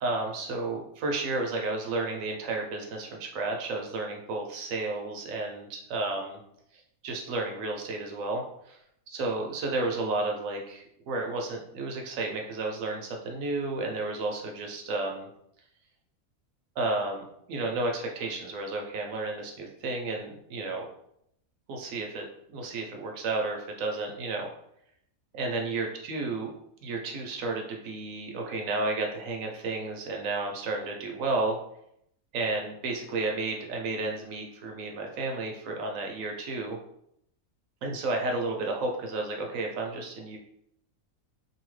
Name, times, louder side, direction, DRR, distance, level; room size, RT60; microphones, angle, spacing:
voice 1, 0.0-6.4 6.7-8.8 9.2-15.3 16.8-20.9 21.7-24.5 25.3-26.5 26.8-31.6 32.3-36.8 37.8-40.4, right 3 dB, 75° right, 1 dB, 0.9 m, -32 dB
2.8 x 2.6 x 3.1 m, 0.74 s
omnidirectional pair, 1.5 m